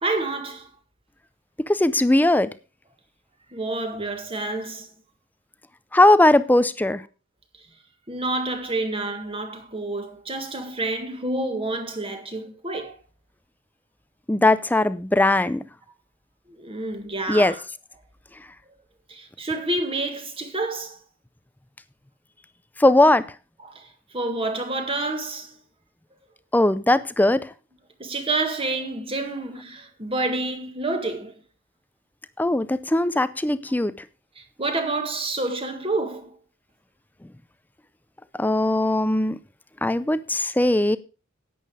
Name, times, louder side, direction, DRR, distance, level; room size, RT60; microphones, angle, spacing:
voice 1, 0.0-0.7 3.5-4.9 8.1-12.9 16.5-17.6 19.1-21.0 23.6-25.6 28.0-31.3 34.3-36.3, right 2 dB, 25° right, 1.7 m, -28 dB
voice 2, 1.6-2.5 5.9-7.0 14.3-15.6 17.3-17.5 22.8-23.2 26.5-27.5 32.4-33.9 38.4-39.4 39.8-41.0, left 1 dB, 10° left, 0.5 m, -19 dB
11.0 x 8.6 x 4.8 m
head